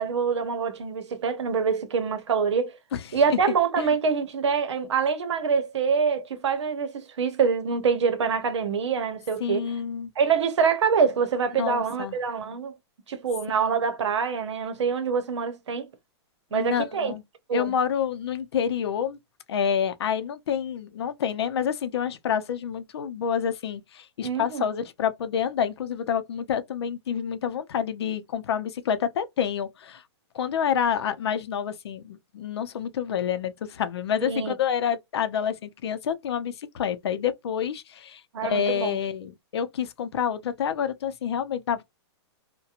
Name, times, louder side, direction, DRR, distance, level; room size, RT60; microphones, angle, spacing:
voice 1, 0.0-2.8 3.1-9.7 10.2-12.8 13.1-15.9 16.5-17.1 17.5-17.7 24.2-24.6 34.3-34.5 38.3-39.0, right 6 dB, 90° right, 0.8 m, -25 dB
voice 2, 2.9-3.4 3.8-3.9 9.4-10.1 11.6-12.2 16.5-17.2 17.5-19.2 19.5-30.0 30.3-41.8, left 8 dB, 65° left, 0.5 m, -28 dB
2.8 x 2.2 x 2.4 m
hypercardioid pair, 170°, 14 cm